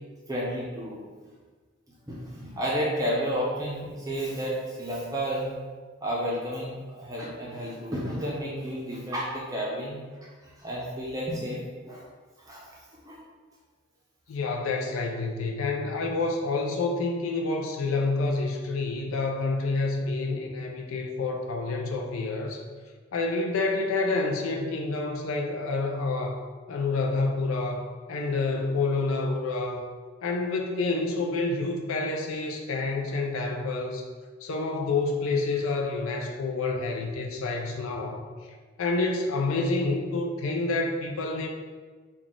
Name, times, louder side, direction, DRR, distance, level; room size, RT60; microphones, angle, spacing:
voice 1, 0.3-1.0 2.1-5.6 6.0-10.0 10.6-11.6 11.8-12.0 12.5-12.6 13.0-13.2, equal, 15° right, -5 dB, 0.5 m, -31 dB
voice 2, 14.3-22.6 23.1-27.8 28.1-29.8 30.2-34.0 34.4-38.2 38.8-41.5, left 3 dB, 75° left, 1 dB, 0.4 m, -28 dB
4.0 x 2.3 x 3.6 m, 1.5 s
head